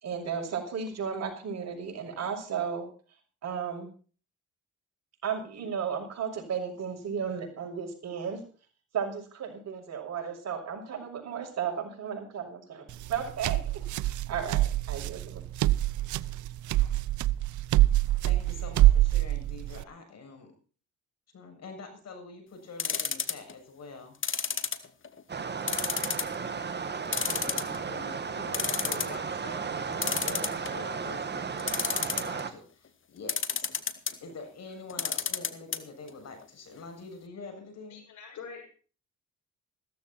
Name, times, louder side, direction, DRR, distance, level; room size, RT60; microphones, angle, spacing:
voice 1, 0.0-2.9 3.4-3.9 5.2-8.4 8.9-13.7 14.3-15.4, right 7 dB, 60° right, 2 dB, 6.4 m, -34 dB
sound 1, 12.9-19.8, right 15 dB, 75° right, 0.7 m, -25 dB
voice 2, 18.0-20.6 21.3-24.2 27.3-33.7 34.2-38.1, left 3 dB, 55° left, 5 dB, 7.3 m, -45 dB
sound 2, 22.8-23.5 24.2-25.2 25.7-26.3 26.7-26.8 27.1-27.9 28.3-28.4 28.5-29.2 30.0-30.9 31.6-32.4 33.3-34.1 34.9-35.8 36.1-36.2 36.4-36.5, left 7 dB, 40° left, 1.9 m, -30 dB
sound 3, 25.3-32.5, right 5 dB, 35° right, 2.0 m, -34 dB
voice 3, 37.9-38.7, left 6 dB, 75° left, 4 dB, 6.6 m, -44 dB
15.5 x 14.0 x 4.4 m, 0.40 s
cardioid pair, 90°, 30 cm